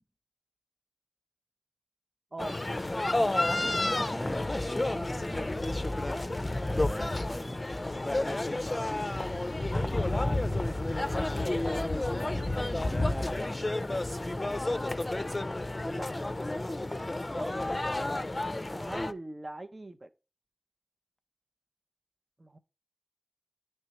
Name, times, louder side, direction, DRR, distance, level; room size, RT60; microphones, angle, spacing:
sound 1, 2.4-19.1, left 2 dB, 40° left, 0.4 m, -30 dB
voice 1, 3.4-5.6 6.6-8.0 9.7-10.7 12.8-14.3 17.1-17.6, left 1 dB, 15° left, 0.7 m, -43 dB
voice 2, 12.0-13.1 15.9-16.3 17.3-17.6 18.7-20.1 22.4-22.6, right 2 dB, 45° right, 0.6 m, -44 dB
9.7 x 3.3 x 2.9 m
wide cardioid pair, 40°, 0 cm